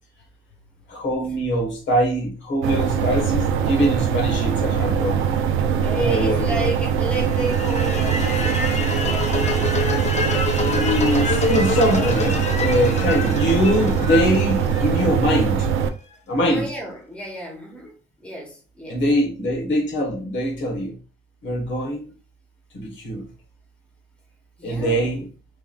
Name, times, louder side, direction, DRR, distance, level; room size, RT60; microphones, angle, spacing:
voice 1, 0.9-5.2 5.9-6.7 10.7-15.7 16.3-16.7 18.9-21.0 21.4-22.1 22.7-23.3 24.6-25.3, equal, 70° left, 1.2 m, -23 dB
sound 1, 2.6-15.9, right 7 dB, 80° right, 0.4 m, -22 dB
voice 2, 5.8-8.7 9.1-9.5 16.4-19.0 24.6-25.1, right 1 dB, 5° left, 1.1 m, -32 dB
sound 2, 7.3-15.4, left 3 dB, 35° left, 0.6 m, -27 dB
3.2 x 2.5 x 2.3 m
cardioid pair, 90°, 20 cm